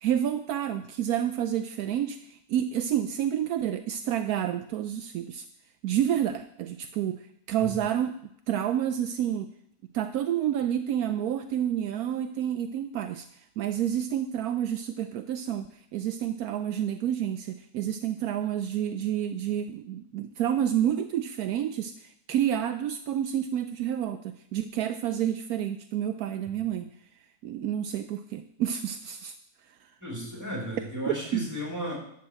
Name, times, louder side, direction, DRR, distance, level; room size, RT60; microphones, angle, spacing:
voice 1, 0.0-5.4 5.8-7.2 7.5-8.2 8.5-9.5 9.9-13.3 13.6-26.9 27.4-29.3 31.1-31.4, right 10 dB, 75° right, 8 dB, 1.0 m, -29 dB
voice 2, 30.0-31.9, equal, 10° right, -2 dB, 3.7 m, -34 dB
11.5 x 4.4 x 7.5 m, 0.72 s
omnidirectional pair, 1.6 m